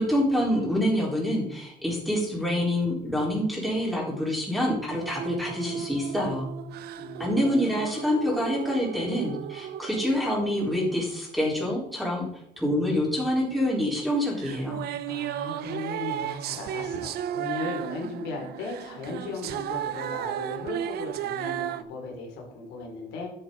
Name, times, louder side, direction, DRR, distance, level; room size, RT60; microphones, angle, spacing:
voice 1, 0.0-6.5 7.2-12.3 12.6-14.8, left 1 dB, ahead, -4 dB, 4.2 m, -26 dB
sound 1, 4.9-11.9 14.4-21.8, right 11 dB, 70° right, 0.6 m, -35 dB
voice 2, 7.0-7.8 15.0-23.3, left 3 dB, 85° left, 0 dB, 3.0 m, -37 dB
11.0 x 7.1 x 3.9 m, 0.75 s
cardioid pair, 110°, 17 cm